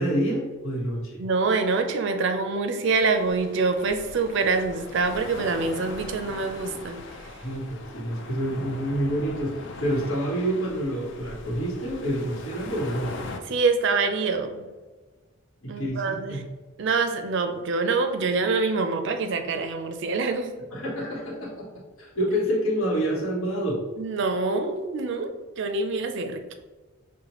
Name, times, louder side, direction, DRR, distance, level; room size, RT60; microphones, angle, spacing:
voice 1, 0.0-1.2 7.4-13.1 15.6-16.4 20.7-21.7 22.0-23.8, equal, 75° left, -4 dB, 1.1 m, -28 dB
voice 2, 1.2-7.4 13.4-14.7 15.7-16.4 16.8-20.6 24.0-26.5, right 4 dB, 55° right, 7 dB, 0.4 m, -26 dB
sound 1, 2.9-13.4, left 3 dB, 55° left, 0.4 m, -40 dB
6.4 x 2.1 x 2.9 m, 1.3 s
head